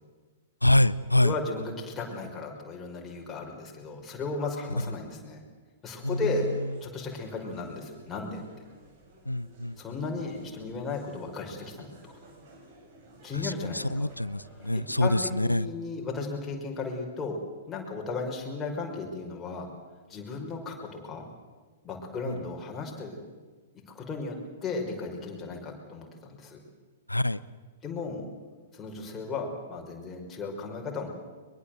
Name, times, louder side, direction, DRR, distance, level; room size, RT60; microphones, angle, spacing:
voice 1, 0.6-1.3 6.0-6.4 9.3-9.8 13.3-15.7 22.3-22.4 27.1-27.4, left 1 dB, 85° left, 18 dB, 0.8 m, -25 dB
voice 2, 1.2-5.4 5.8-6.5 6.8-8.4 9.8-12.1 13.2-14.1 14.6-15.2 15.4-17.4 17.7-19.7 20.1-21.3 21.8-23.2 23.9-26.6 27.8-28.3 28.7-31.1, left 3 dB, 15° left, 0 dB, 5.5 m, -35 dB
sound 1, 6.1-15.1, right 1 dB, 45° right, 7.6 m, -53 dB
23.0 x 22.5 x 7.9 m, 1.4 s
figure-of-eight pair, 110°, 0 cm